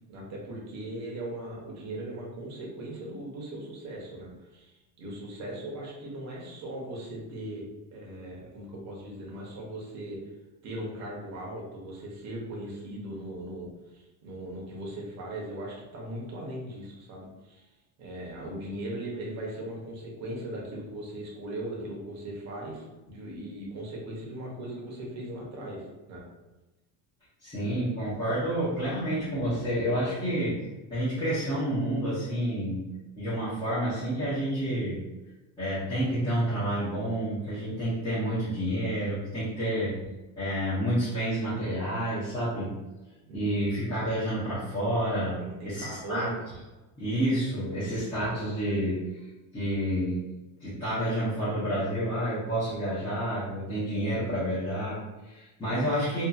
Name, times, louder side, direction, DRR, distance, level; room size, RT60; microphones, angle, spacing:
voice 1, 0.1-7.6 7.9-10.2 10.6-17.7 18.0-26.2 43.3-43.7 45.4-46.4, right 1 dB, 40° right, -3 dB, 0.9 m, -39 dB
voice 2, 27.4-30.6 30.9-32.9 33.2-35.1 35.6-40.0 40.4-42.7 43.3-46.3 47.0-49.2 49.5-50.3 50.6-56.2, right 1 dB, 10° left, -14 dB, 0.8 m, -29 dB
2.7 x 2.5 x 2.4 m, 1.1 s
cardioid pair, 155°, 42 cm